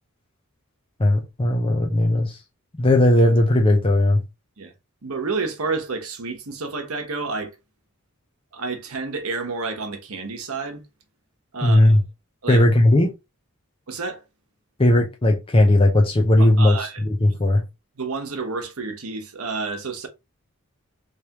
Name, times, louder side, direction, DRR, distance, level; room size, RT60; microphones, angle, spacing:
voice 1, 1.0-2.4 2.8-4.2 11.6-12.0 12.5-13.1 14.8-17.6, left 1 dB, 25° left, 0.6 m, -17 dB
voice 2, 5.0-7.5 8.5-10.8 11.5-12.0 12.4-12.6 13.9-14.2 16.4-17.0 18.0-20.1, right 4 dB, 80° right, 1.0 m, -30 dB
3.4 x 3.2 x 2.9 m
head